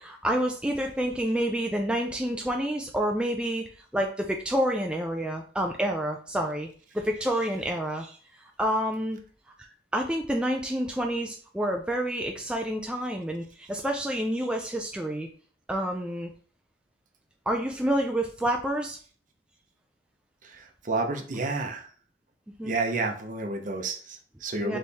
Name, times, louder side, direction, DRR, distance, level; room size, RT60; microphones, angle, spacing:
voice 1, 0.0-3.6 3.9-6.7 6.9-8.2 8.6-9.2 9.9-15.3 15.7-16.3 17.5-19.0 22.6-22.7 24.6-24.8, equal, 5° right, 2 dB, 0.3 m, -28 dB
voice 2, 20.4-21.9 22.6-24.8, right 3 dB, 45° right, 4 dB, 0.7 m, -30 dB
4.2 x 3.2 x 3.5 m, 0.43 s
head